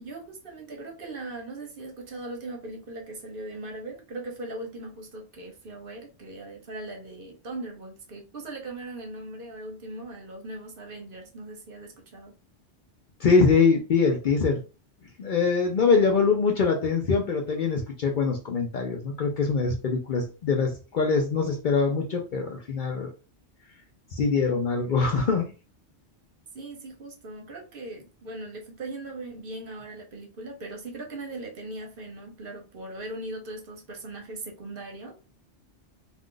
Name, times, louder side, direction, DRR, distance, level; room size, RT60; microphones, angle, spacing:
voice 1, 0.0-12.4 26.5-35.1, right 2 dB, 55° right, 0.8 m, -39 dB
voice 2, 13.2-14.6 15.2-23.1 24.1-25.5, left 4 dB, 55° left, 0.6 m, -23 dB
2.4 x 2.4 x 3.7 m
omnidirectional pair, 1.2 m